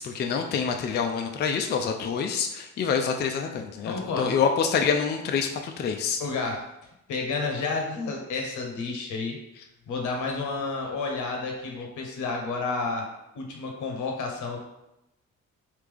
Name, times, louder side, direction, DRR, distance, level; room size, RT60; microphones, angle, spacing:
voice 1, 0.0-6.2, left 6 dB, 35° left, 4 dB, 0.4 m, -26 dB
voice 2, 3.9-4.4 6.2-6.6 7.1-9.4 9.9-13.1 13.3-14.6, left 3 dB, 80° left, 2 dB, 0.9 m, -30 dB
3.4 x 2.8 x 3.4 m, 0.89 s
cardioid pair, 90°, 30 cm